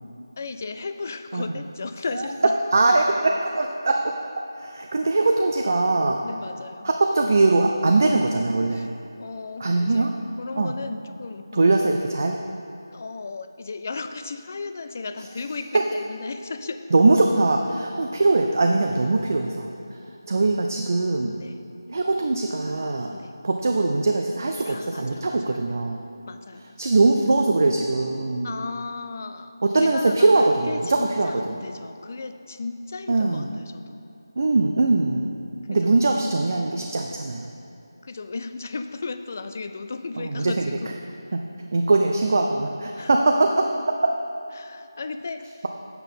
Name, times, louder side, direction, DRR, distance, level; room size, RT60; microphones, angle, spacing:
voice 1, 0.4-2.4 6.2-6.9 8.7-8.9 9.2-11.7 12.9-16.8 21.4-21.6 23.1-23.3 24.6-25.6 26.3-27.0 28.4-30.3 30.7-34.0 35.8-35.9 38.0-40.9 43.0-43.1 44.5-45.6, left 4 dB, 35° left, 9 dB, 0.4 m, -35 dB
voice 2, 2.7-4.2 4.6-6.2 6.8-8.9 9.6-10.1 10.6-10.7 11.5-12.4 15.7-15.8 16.9-20.0 20.3-21.4 21.9-23.1 23.4-26.0 26.8-28.5 29.6-31.3 33.1-33.5 34.4-35.3 35.7-37.5 40.2-40.7 41.7-43.5, right 3 dB, 45° right, 3 dB, 0.5 m, -21 dB
8.2 x 5.6 x 5.3 m, 2.6 s
figure-of-eight pair, 165°, 2 cm